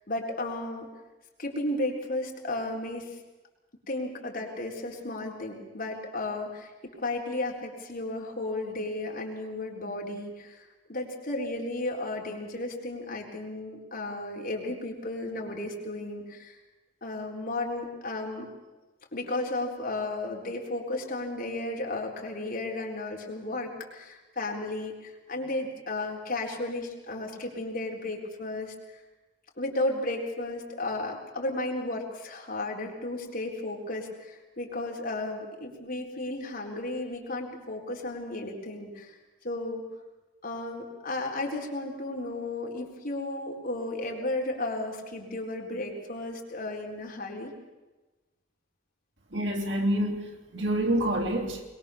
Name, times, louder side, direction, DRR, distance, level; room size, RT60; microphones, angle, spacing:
voice 1, 0.1-0.9 1.4-3.2 3.9-16.6 17.0-18.5 19.1-29.0 29.6-39.2 39.4-39.9 40.4-47.5, left 2 dB, 50° left, 0 dB, 4.1 m, -34 dB
voice 2, 49.3-51.6, right 1 dB, 70° right, 2 dB, 3.2 m, -27 dB
22.5 x 22.0 x 7.1 m, 1.1 s
head